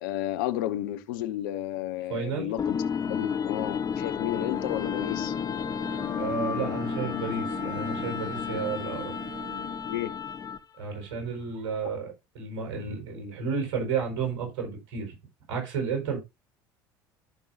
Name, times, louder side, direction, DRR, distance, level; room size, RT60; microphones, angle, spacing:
voice 1, 0.0-5.3 9.8-10.2, left 13 dB, 75° left, 0.9 m, -32 dB
voice 2, 2.1-2.5 6.2-9.1 10.8-15.1 15.5-16.2, right 5 dB, 70° right, 4.6 m, -32 dB
sound 1, 2.6-10.8, left 7 dB, 35° left, 1.0 m, -31 dB
Bowed string instrument, 4.2-10.3, right 6 dB, 90° right, 0.7 m, -44 dB
14.5 x 5.5 x 2.6 m
hypercardioid pair, 70°, 11 cm